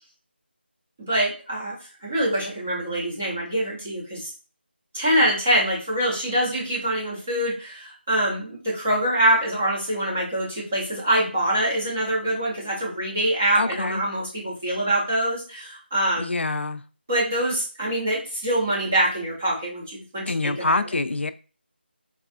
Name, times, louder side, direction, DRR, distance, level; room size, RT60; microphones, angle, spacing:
voice 1, 1.0-1.8 2.0-4.3 4.9-16.3 17.1-20.8, right 1 dB, 10° right, 0.4 m, -24 dB
voice 2, 13.6-14.0 16.2-16.8 20.3-21.3, left 3 dB, 90° left, 0.4 m, -25 dB
4.1 x 2.3 x 2.5 m
figure-of-eight pair, 175°, 6 cm